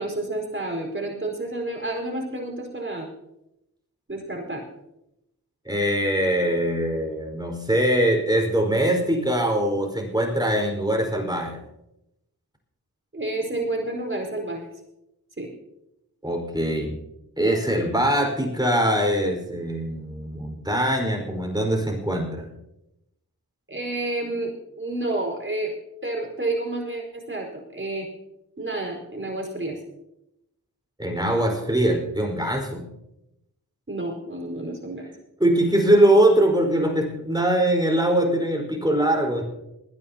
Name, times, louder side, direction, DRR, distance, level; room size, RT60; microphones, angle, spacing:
voice 1, 0.0-3.1 4.1-4.6 13.1-14.7 15.4-15.5 23.7-25.7 26.0-28.1 28.6-29.8 33.9-35.0, right 2 dB, 30° right, 0 dB, 4.7 m, -30 dB
voice 2, 5.6-11.6 16.2-17.0 17.4-22.5 31.0-32.9 35.4-39.4, right 1 dB, 10° right, 2 dB, 4.7 m, -22 dB
20.5 x 14.5 x 2.9 m, 0.87 s
cardioid pair, 45°, 37 cm